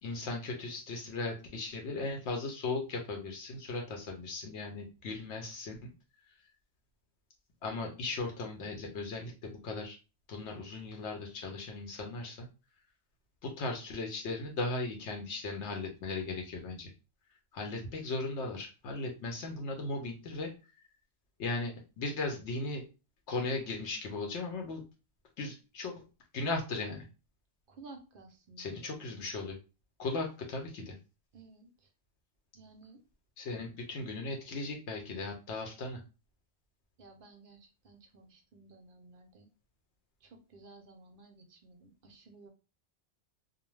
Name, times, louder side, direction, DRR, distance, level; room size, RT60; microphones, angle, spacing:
voice 1, 0.0-5.9 7.6-10.0 10.3-12.5 13.4-16.9 17.5-20.5 21.4-22.8 23.3-24.8 25.4-26.0 26.3-27.0 28.6-29.6 30.0-31.0 33.4-36.0, left 3 dB, 70° left, 2 dB, 0.9 m, -37 dB
voice 2, 27.7-29.0 31.3-31.9 32.5-33.0 37.0-39.5 40.2-42.5, right 3 dB, 60° right, 4 dB, 0.6 m, -55 dB
2.4 x 2.1 x 3.0 m, 0.31 s
omnidirectional pair, 1.2 m